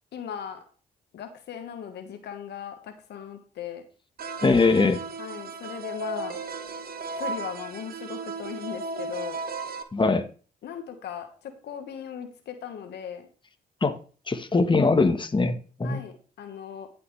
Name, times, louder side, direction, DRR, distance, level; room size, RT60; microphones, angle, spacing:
voice 1, 0.1-0.6 1.1-3.8 5.2-6.4 7.1-9.4 10.6-13.3 15.8-16.9, left 8 dB, 75° left, 7 dB, 1.4 m, -38 dB
sound 1, 4.2-9.8, right 3 dB, 60° right, 1.2 m, -35 dB
voice 2, 4.4-5.0 9.9-10.3 13.8-14.0 14.3-16.0, left 3 dB, 25° left, 8 dB, 1.4 m, -22 dB
15.0 x 6.0 x 3.3 m, 0.37 s
supercardioid pair, 55°, 18 cm